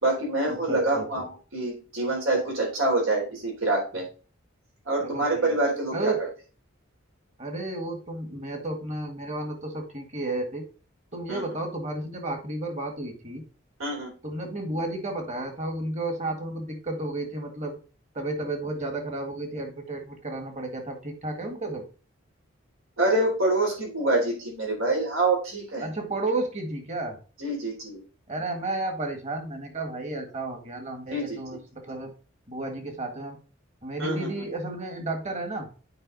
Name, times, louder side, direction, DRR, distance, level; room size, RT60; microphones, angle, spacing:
voice 1, 0.0-4.0 4.9-6.3 11.3-11.4 13.8-14.1 23.0-25.9 27.4-28.0 31.1-31.6 34.0-34.4, right 2 dB, 85° right, -1 dB, 4.0 m, -26 dB
voice 2, 0.7-1.2 5.0-5.5 5.9-6.2 7.4-10.7 11.1-13.4 14.2-17.8 18.2-21.8 25.8-27.2 28.3-32.1 32.5-33.4 33.8-35.7, right 2 dB, 35° right, 4 dB, 1.8 m, -32 dB
8.0 x 4.8 x 4.0 m, 0.35 s
head